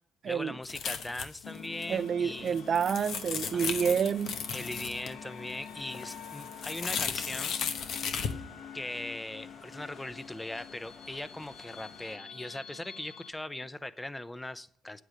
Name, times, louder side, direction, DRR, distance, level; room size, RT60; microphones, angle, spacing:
voice 1, 0.3-2.6 3.5-3.7 4.5-7.5 8.7-15.0, left 1 dB, 10° left, 0.6 m, -40 dB
sound 1, 0.6-1.6 1.8-1.9 2.4-5.1 5.5-8.3, left 7 dB, 70° left, 1.0 m, -35 dB
sound 2, 1.4-13.3, left 7 dB, 90° left, 1.2 m, -47 dB
sound 3, 1.9-12.2, left 3 dB, 40° left, 1.3 m, -55 dB
voice 2, 1.9-4.3, right 7 dB, 55° right, 0.3 m, -28 dB
8.7 x 8.0 x 6.3 m
cardioid pair, 90°, 0 cm